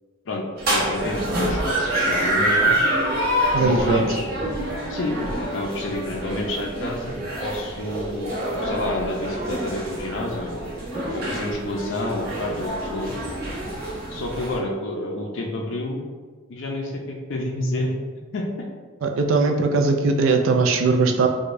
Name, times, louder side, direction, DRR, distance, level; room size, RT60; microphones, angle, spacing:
voice 1, 0.3-2.7 3.6-4.3 4.9-8.3 8.6-10.7 11.1-13.2 14.1-16.0 16.5-17.9 18.3-18.7, left 1 dB, 60° left, 0 dB, 0.5 m, -29 dB
sound 1, 0.6-14.6, right 1 dB, 50° right, 1.1 m, -26 dB
voice 2, 3.5-4.0 19.0-21.3, right 4 dB, 70° right, 4 dB, 0.4 m, -19 dB
4.7 x 2.2 x 2.6 m, 1.5 s
head